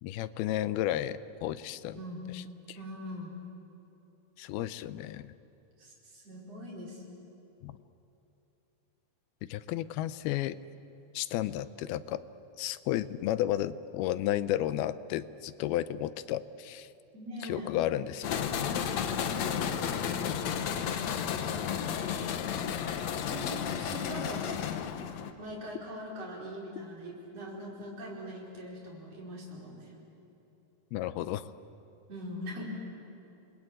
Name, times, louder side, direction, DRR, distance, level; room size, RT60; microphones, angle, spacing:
voice 1, 0.0-2.0 2.3-2.4 2.7-2.8 4.4-5.3 7.6-7.8 9.5-10.6 11.1-12.2 12.6-16.9 17.4-18.5 30.9-31.5, left 13 dB, 80° left, 14 dB, 2.6 m, -32 dB
voice 2, 2.8-3.4 5.8-7.2 17.1-17.7 23.2-24.7 25.4-29.9 32.1-32.6, equal, 40° right, -3 dB, 5.7 m, -42 dB
sound 1, 18.2-25.3, left 8 dB, 65° left, 1.8 m, -32 dB
28.5 x 21.0 x 9.1 m, 3.0 s
omnidirectional pair, 4.4 m